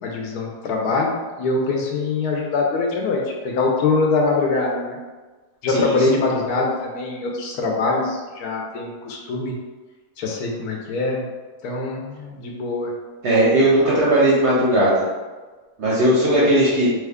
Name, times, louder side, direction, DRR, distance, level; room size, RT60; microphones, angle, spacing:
voice 1, 0.0-5.0 5.6-9.5 10.2-11.3 11.6-12.9, left 3 dB, 75° left, -1 dB, 1.1 m, -23 dB
voice 2, 13.2-15.1 15.8-16.9, right 1 dB, 60° right, -6 dB, 0.7 m, -17 dB
3.1 x 2.3 x 3.4 m, 1.3 s
omnidirectional pair, 1.7 m